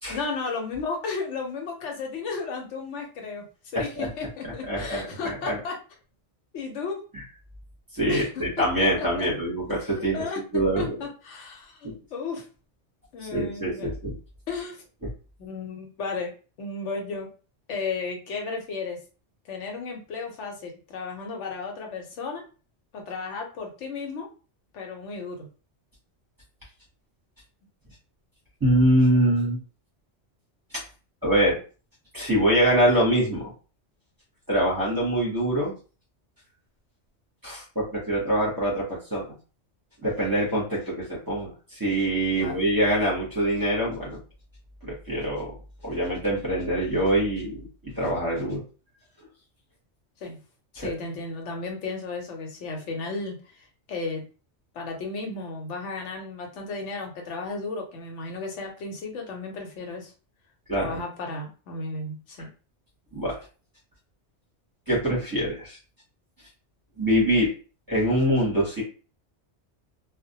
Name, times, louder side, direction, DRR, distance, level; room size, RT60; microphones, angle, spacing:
voice 1, 0.1-3.4 3.7-5.8 6.5-7.0 8.1-9.3 10.1-12.4 13.1-13.9 14.5-14.8 15.4-16.3 16.6-17.3 17.7-19.0 19.5-22.4 22.9-24.3 24.7-25.5 42.3-42.5 50.2-50.4 50.7-53.4 53.9-54.3 54.7-60.1 60.8-62.5, left 4 dB, 90° left, 2 dB, 1.0 m, -34 dB
voice 2, 3.7-4.1 4.7-5.6 7.9-10.2 10.5-11.0 11.8-12.0 13.3-14.2 28.6-29.6 31.2-31.6 32.1-33.5 34.5-35.7 37.4-39.2 40.0-44.2 44.9-45.5 45.8-47.7 48.0-48.6 50.8-50.9 60.7-61.0 63.1-63.4 64.9-65.8 67.0-67.5 67.9-68.8, right 1 dB, 20° right, -6 dB, 0.7 m, -24 dB
2.2 x 2.1 x 2.7 m, 0.35 s
omnidirectional pair, 1.2 m